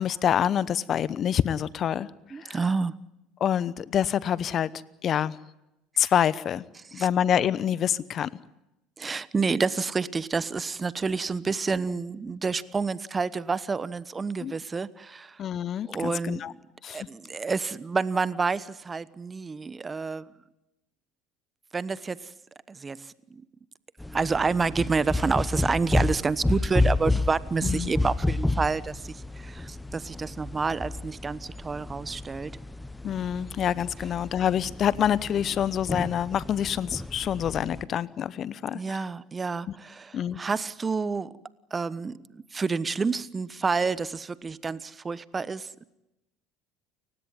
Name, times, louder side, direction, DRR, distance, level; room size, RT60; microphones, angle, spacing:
voice 1, 0.0-2.1 2.4-2.6 3.4-4.7 5.0-5.4 6.0-6.6 6.9-8.3 14.4-14.5 15.4-16.5 16.8-17.1 27.6-27.9 33.0-39.0 40.1-40.4, left 9 dB, 45° left, 0.9 m, -26 dB
voice 2, 2.3-3.0 6.9-7.1 9.0-15.4 15.8-16.6 16.9-20.3 21.7-22.3 22.7-23.4 24.1-32.6 38.7-41.4 41.7-45.8, right 4 dB, 25° right, 1.1 m, -29 dB
sound 1, 24.0-37.8, left 2 dB, 5° left, 1.1 m, -31 dB
29.5 x 16.0 x 9.9 m
hypercardioid pair, 75°, 0 cm